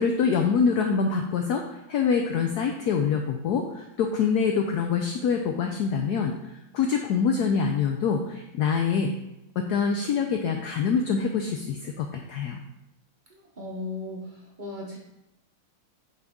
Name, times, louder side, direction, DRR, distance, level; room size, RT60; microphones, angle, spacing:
voice 1, 0.0-6.3 6.7-9.1 9.6-12.6, left 6 dB, 85° left, 3 dB, 0.8 m, -25 dB
voice 2, 13.3-15.0, left 2 dB, 40° right, -2 dB, 0.6 m, -37 dB
8.1 x 3.9 x 3.6 m, 0.88 s
omnidirectional pair, 2.3 m